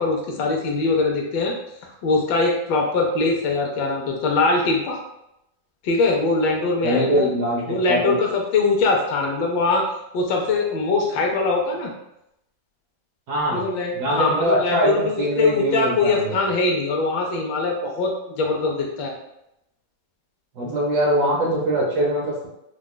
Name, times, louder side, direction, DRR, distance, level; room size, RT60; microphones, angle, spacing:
voice 1, 0.0-1.5 2.0-5.0 5.8-7.3 7.7-9.8 10.1-11.9 13.5-19.1, left 3 dB, 75° left, 1 dB, 1.3 m, -22 dB
voice 2, 6.8-8.2 13.3-13.6 13.9-16.4 20.6-22.5, right 1 dB, 65° right, -3 dB, 1.1 m, -22 dB
4.8 x 2.2 x 2.2 m, 0.84 s
omnidirectional pair, 2.2 m